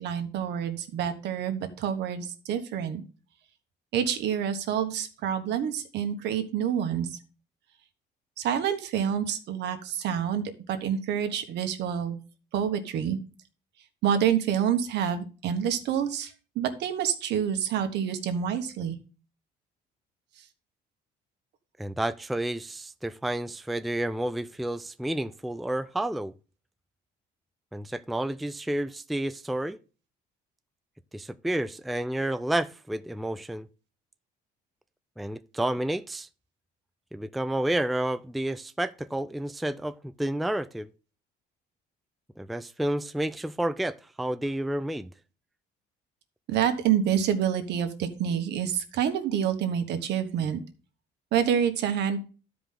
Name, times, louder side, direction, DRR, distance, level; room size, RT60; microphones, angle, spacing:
voice 1, 0.0-3.0 3.9-7.2 8.4-12.2 12.5-13.2 14.0-19.0 46.5-50.6 51.3-52.2, right 8 dB, 75° right, 1.4 m, -27 dB
voice 2, 21.8-26.3 27.7-29.8 31.1-33.7 35.2-36.3 37.1-40.9 42.4-45.1, right 1 dB, ahead, 0.4 m, -30 dB
12.5 x 5.1 x 3.7 m
cardioid pair, 100°, 18 cm